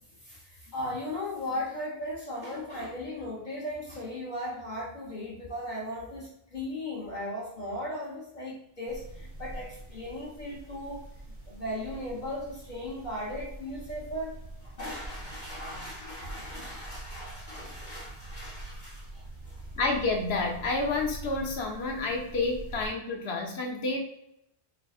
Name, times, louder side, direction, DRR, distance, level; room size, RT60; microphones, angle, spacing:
voice 1, 0.0-11.1 11.5-19.6, left 1 dB, 50° left, -5 dB, 1.0 m, -37 dB
sound 1, 8.8-22.9, right 2 dB, 25° right, 1.1 m, -44 dB
voice 2, 19.7-24.0, left 3 dB, 75° left, 2 dB, 1.0 m, -29 dB
4.2 x 3.8 x 2.3 m, 0.80 s
omnidirectional pair, 1.1 m